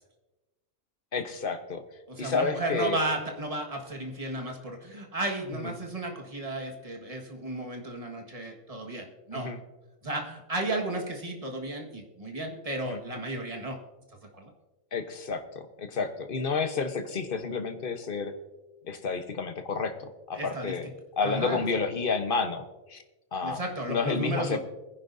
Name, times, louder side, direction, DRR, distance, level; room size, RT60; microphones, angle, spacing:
voice 1, 1.1-1.8 2.2-3.0 5.6-5.7 9.3-9.6 12.9-13.0 14.9-15.4 15.8-18.3 18.8-19.9 20.3-20.8 21.2-23.0 23.3-23.6 23.9-24.6, left 4 dB, 45° left, 7 dB, 1.1 m, -30 dB
voice 2, 2.1-9.5 10.0-13.8 14.3-14.5 20.3-20.9 21.2-21.6 23.4-24.6, right 2 dB, 25° right, 1 dB, 1.7 m, -34 dB
21.5 x 10.5 x 2.7 m, 1.1 s
omnidirectional pair, 1.4 m